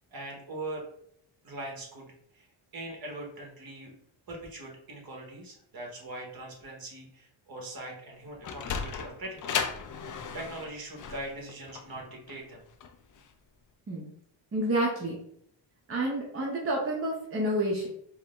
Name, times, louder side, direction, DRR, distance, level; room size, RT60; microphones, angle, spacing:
voice 1, 0.1-0.8 1.4-2.5 2.7-3.9 4.3-9.6 10.3-12.6, right 1 dB, 50° right, 0 dB, 1.5 m, -41 dB
Sliding door, 8.1-13.3, left 6 dB, 40° left, 0.5 m, -36 dB
voice 2, 14.5-15.2 15.9-17.9, right 1 dB, 30° right, -3 dB, 0.9 m, -29 dB
4.7 x 2.2 x 3.7 m, 0.68 s
cardioid pair, 95°, 48 cm